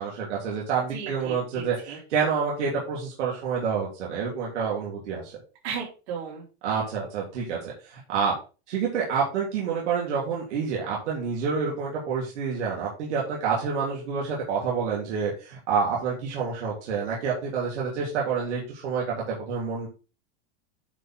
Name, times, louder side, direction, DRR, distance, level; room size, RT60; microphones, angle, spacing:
voice 1, 0.0-5.3 6.6-8.3 8.7-19.9, right 6 dB, 90° right, -4 dB, 3.4 m, -28 dB
voice 2, 0.9-2.0 5.6-6.4, right 6 dB, 65° right, -3 dB, 4.7 m, -35 dB
9.7 x 4.8 x 3.9 m, 0.33 s
supercardioid pair, 170°, 34 cm